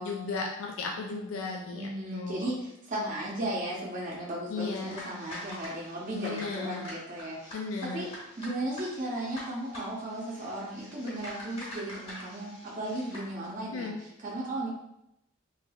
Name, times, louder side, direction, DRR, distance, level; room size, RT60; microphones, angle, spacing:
voice 1, 0.0-2.5 4.5-5.0 6.2-6.9 7.5-8.1 13.7-14.0, left 4 dB, 70° left, 0 dB, 0.3 m, -35 dB
voice 2, 1.7-7.5 7.8-8.1 8.4-14.7, right 1 dB, 40° right, -5 dB, 0.6 m, -35 dB
sound 1, 4.5-13.3, left 1 dB, 30° left, 1.4 m, -45 dB
3.3 x 3.2 x 2.2 m, 0.82 s
head